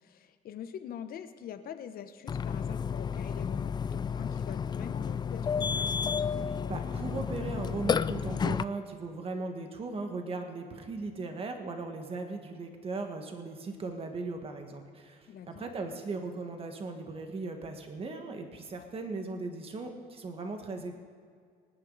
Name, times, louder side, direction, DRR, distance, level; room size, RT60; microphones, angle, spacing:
voice 1, 0.0-5.8 15.3-15.7, left 8 dB, 60° left, 9 dB, 1.0 m, -44 dB
Burping eructation, 2.3-8.6, left 6 dB, 25° left, 0.3 m, -31 dB
voice 2, 6.4-20.9, right 3 dB, 35° right, 4 dB, 1.8 m, -38 dB
25.0 x 9.9 x 4.1 m, 2.1 s
cardioid pair, 110°, 17 cm